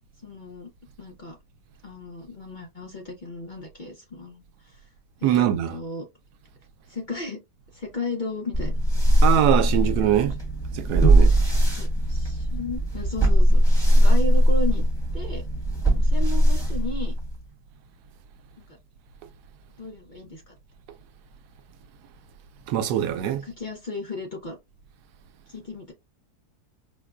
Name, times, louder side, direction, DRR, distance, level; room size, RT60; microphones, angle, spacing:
voice 1, 0.2-0.7 1.0-1.4 1.8-4.8 5.2-6.1 6.9-7.4 7.7-8.7 9.3-9.4 11.7-14.8 15.1-15.4 15.9-17.1 18.6-18.7 19.8-20.5 23.4-24.6 25.5-25.9, left 2 dB, 40° left, 0.7 m, -34 dB
voice 2, 5.2-5.8 9.2-10.4 10.7-11.3 22.7-23.4, right 11 dB, 85° right, 1.1 m, -22 dB
sound 1, 8.5-17.5, right 1 dB, 5° left, 1.1 m, -20 dB
5.2 x 2.2 x 2.3 m
omnidirectional pair, 1.7 m